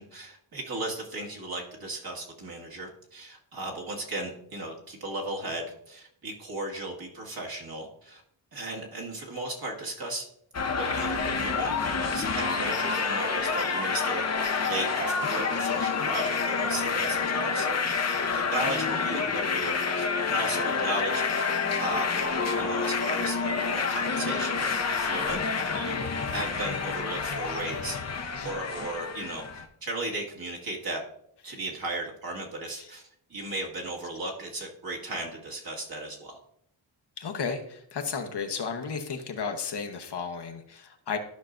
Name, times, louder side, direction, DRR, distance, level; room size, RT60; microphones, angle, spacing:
voice 1, 0.0-8.2 8.5-10.2 10.7-14.3 14.6-22.1 22.6-28.0 28.4-31.0 31.4-33.0 33.3-36.4, right 2 dB, 50° right, -1 dB, 1.9 m, -36 dB
sound 1, 10.5-29.6, left 5 dB, 35° left, 0.8 m, -28 dB
voice 2, 37.2-41.2, left 5 dB, 55° left, 4 dB, 1.0 m, -34 dB
12.5 x 5.6 x 2.5 m, 0.70 s
wide cardioid pair, 100°, 47 cm